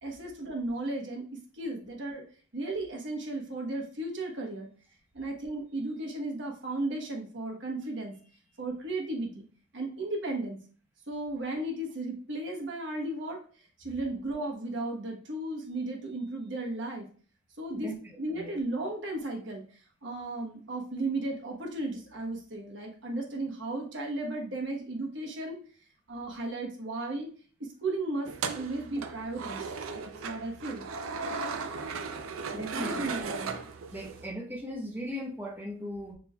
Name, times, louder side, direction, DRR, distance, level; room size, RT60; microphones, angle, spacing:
voice 1, 0.0-2.2 2.5-4.7 5.1-8.1 8.6-9.4 9.7-10.6 11.1-13.4 13.8-17.1 17.6-17.9 18.2-19.6 20.0-25.6 26.1-27.3 27.6-30.8 32.7-33.6, right 2 dB, 65° right, 1 dB, 1.2 m, -35 dB
sound 1, 28.3-34.3, right 4 dB, 90° right, 0.5 m, -37 dB
voice 2, 32.5-33.1 33.9-36.1, equal, 10° right, -3 dB, 0.9 m, -37 dB
5.3 x 4.1 x 2.3 m, 0.42 s
head